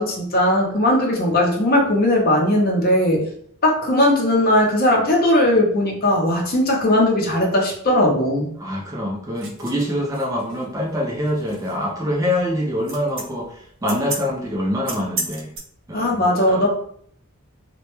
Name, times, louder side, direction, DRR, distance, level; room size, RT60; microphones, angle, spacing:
voice 1, 0.0-3.3 3.6-8.5 15.9-16.7, left 1 dB, 45° left, -1 dB, 0.6 m, -18 dB
voice 2, 8.6-15.5 15.9-16.6, equal, 15° right, -1 dB, 0.3 m, -25 dB
sound 1, 9.4-15.6, right 3 dB, 65° right, 0.6 m, -33 dB
2.1 x 2.0 x 2.9 m, 0.64 s
head